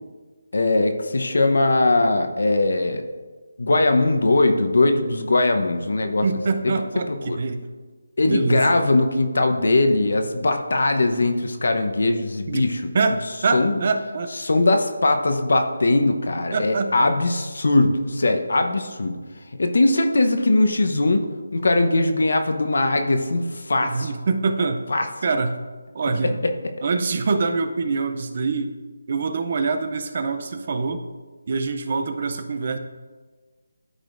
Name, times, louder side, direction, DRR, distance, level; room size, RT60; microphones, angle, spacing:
voice 1, 0.5-3.0 3.6-6.3 7.1-7.4 8.2-12.8 13.5-13.8 14.4-19.2 19.6-21.3 21.5-24.1 24.9-25.1 26.2-26.5, left 2 dB, 65° left, 6 dB, 0.8 m, -20 dB
voice 2, 6.2-7.6 8.3-8.7 12.5-12.6 12.9-14.3 16.5-17.1 23.8-24.8 25.2-25.6 25.9-26.4 26.8-28.8 29.1-31.0 31.5-32.8, right 4 dB, 35° right, 8 dB, 0.5 m, -24 dB
12.5 x 5.0 x 2.5 m, 1.4 s
figure-of-eight pair, 170°, 0 cm